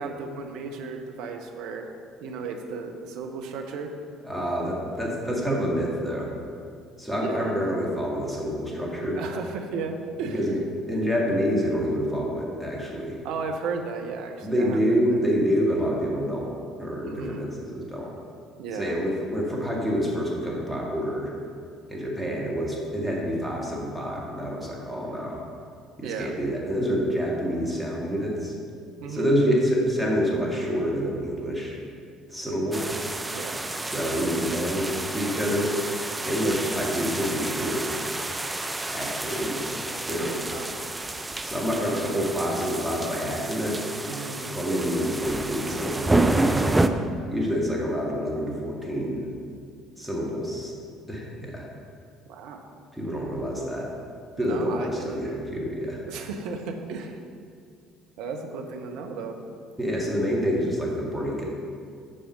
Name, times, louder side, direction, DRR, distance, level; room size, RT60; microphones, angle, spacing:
voice 1, 0.0-1.9 2.2-3.9 7.2-7.5 9.1-10.4 13.2-15.2 17.0-17.5 18.6-19.0 26.0-26.3 29.0-29.3 33.3-33.6 40.2-40.7 44.1-44.5 52.3-52.6 54.4-55.5 56.0-57.2 58.2-59.4, right 4 dB, 65° right, 4 dB, 0.8 m, -35 dB
voice 2, 4.2-6.3 7.0-9.2 10.3-10.6 10.9-13.2 14.4-16.5 16.8-18.1 18.7-21.3 21.9-25.4 26.0-28.5 29.1-31.8 32.3-32.9 33.8-35.7 36.2-38.0 38.9-40.6 41.4-43.8 44.5-46.8 47.3-49.3 50.0-50.7 51.1-51.7 52.9-53.9 54.4-56.0 59.8-61.4, equal, 5° left, -3 dB, 2.1 m, -27 dB
sound 1, 32.7-46.9, right 2 dB, 15° right, 0.5 m, -29 dB
8.7 x 5.0 x 5.3 m, 2.3 s
figure-of-eight pair, 55°, 0 cm